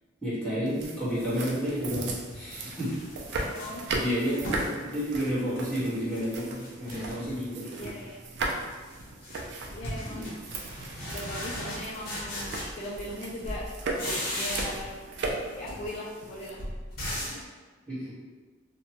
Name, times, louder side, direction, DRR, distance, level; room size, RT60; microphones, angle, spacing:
voice 1, 0.2-2.9 3.9-7.6 10.1-10.3 17.9-18.1, equal, 5° left, -13 dB, 1.3 m, -31 dB
sound 1, 0.7-16.5, right 2 dB, 60° right, 0.4 m, -37 dB
sound 2, 1.9-4.7 5.1-6.3 6.6-7.4 7.7-8.2 8.5-13.2 13.4-15.0 15.2-17.5, left 1 dB, 55° left, 0.8 m, -38 dB
voice 2, 3.4-3.9 4.3-4.4 7.6-8.2 9.7-10.4 11.1-13.7 14.3-15.1 15.5-16.6, left 1 dB, 35° left, -8 dB, 0.3 m, -39 dB
2.7 x 2.1 x 2.9 m, 1.4 s
head